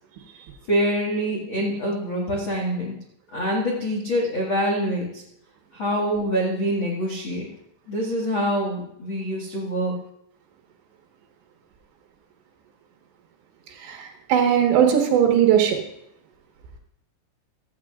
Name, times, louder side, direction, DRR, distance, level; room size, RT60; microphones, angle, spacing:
voice 1, 0.7-3.0 3.3-5.2 5.7-7.5 7.9-9.9, equal, 70° left, -3 dB, 1.1 m, -25 dB
voice 2, 13.8-15.8, right 9 dB, 75° right, 2 dB, 3.6 m, -19 dB
15.5 x 13.5 x 2.5 m, 0.76 s
omnidirectional pair, 5.4 m